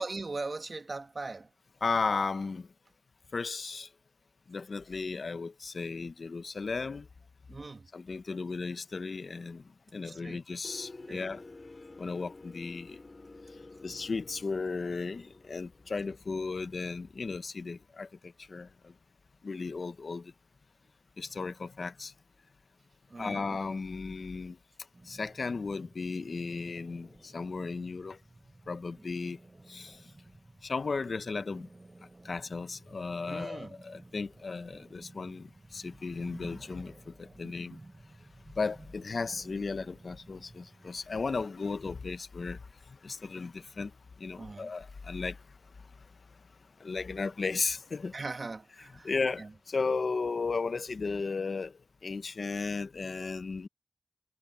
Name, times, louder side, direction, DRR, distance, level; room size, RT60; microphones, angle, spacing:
voice 1, 0.0-1.5 7.5-7.9 10.0-10.4 11.1-11.3 23.1-23.4 33.2-33.8 44.4-44.7 48.1-49.1 49.4-49.5, right 3 dB, 55° right, 1.8 m, -39 dB
voice 2, 1.8-2.7 3.3-3.9 4.5-7.1 7.9-9.6 9.9-11.4 12.0-13.0 13.8-18.9 19.4-20.3 21.2-22.1 23.2-24.6 25.1-28.2 28.7-29.4 29.7-30.0 30.6-31.7 32.2-37.8 38.6-42.6 42.9-43.9 44.2-45.4 46.8-48.1 49.0-53.7, left 4 dB, 75° left, 0.9 m, -35 dB
sound 1, 10.6-17.2, left 2 dB, 50° left, 2.9 m, -51 dB
sound 2, 24.9-40.9, right 2 dB, 40° right, 4.2 m, -54 dB
cardioid pair, 40°, 0 cm